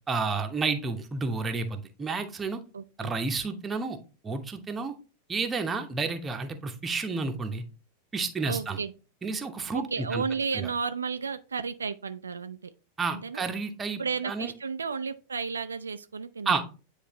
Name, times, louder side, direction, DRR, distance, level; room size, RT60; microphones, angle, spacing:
voice 1, 0.1-2.6 3.0-4.0 4.2-4.9 5.3-7.6 8.1-8.8 9.2-9.8 10.1-10.2 10.5-10.7 13.0-14.5 16.5-16.7, right 4 dB, 15° right, 6 dB, 0.9 m, -30 dB
voice 2, 2.7-3.1 8.5-8.9 9.7-12.7 13.1-13.4 14.0-16.7, right 5 dB, 75° right, 10 dB, 0.3 m, -33 dB
9.4 x 3.3 x 3.1 m, 0.34 s
figure-of-eight pair, 90°, 0 cm